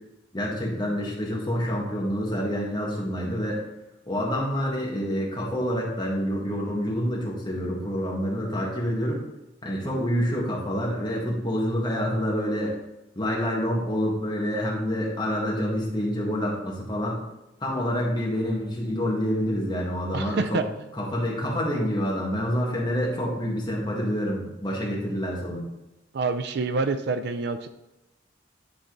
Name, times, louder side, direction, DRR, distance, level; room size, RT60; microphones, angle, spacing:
voice 1, 0.3-3.6 4.1-9.2 9.6-12.8 13.2-17.2 17.6-20.6 21.0-25.6, equal, 20° left, -4 dB, 2.0 m, -27 dB
voice 2, 20.1-20.6 26.1-27.7, right 3 dB, 55° right, 9 dB, 0.4 m, -27 dB
11.5 x 4.2 x 3.9 m, 0.95 s
head